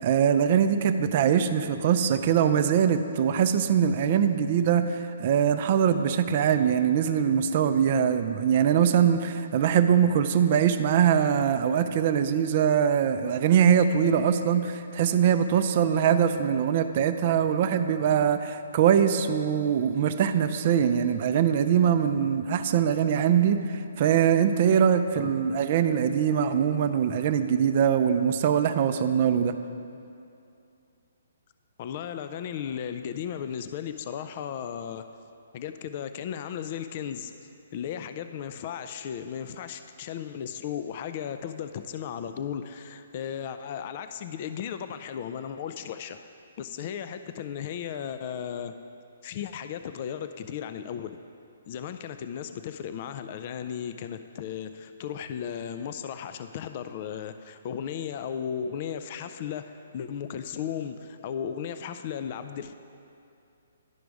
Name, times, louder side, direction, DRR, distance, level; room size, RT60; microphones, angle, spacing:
voice 1, 0.0-29.5, right 8 dB, 45° right, 9 dB, 0.4 m, -22 dB
voice 2, 31.8-35.1 35.5-37.3 37.7-46.2 46.6-48.7 49.2-51.2 51.7-62.7, left 8 dB, 40° left, 9 dB, 0.3 m, -35 dB
11.0 x 5.0 x 4.7 m, 2.6 s
hypercardioid pair, 150°, 0 cm